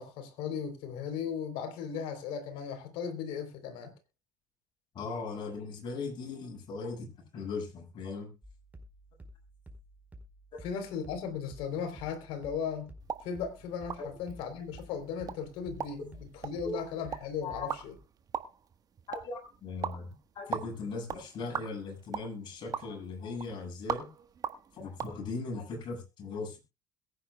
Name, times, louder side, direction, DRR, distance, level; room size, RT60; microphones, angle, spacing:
voice 1, 0.0-3.9 10.6-12.9 13.2-18.0, left 7 dB, 70° left, 3.7 m, -37 dB
voice 2, 4.9-8.3 10.5-10.6 14.0-14.1 16.6-16.8 17.4-17.7 19.1-24.1 24.7-26.6, left 3 dB, 55° left, 7.3 m, -38 dB
sound 1, 8.4-18.0, equal, 15° right, 4.6 m, -53 dB
sound 2, 13.0-25.1, right 7 dB, 40° right, 1.4 m, -42 dB
22.5 x 9.8 x 2.3 m
hypercardioid pair, 70°, 10 cm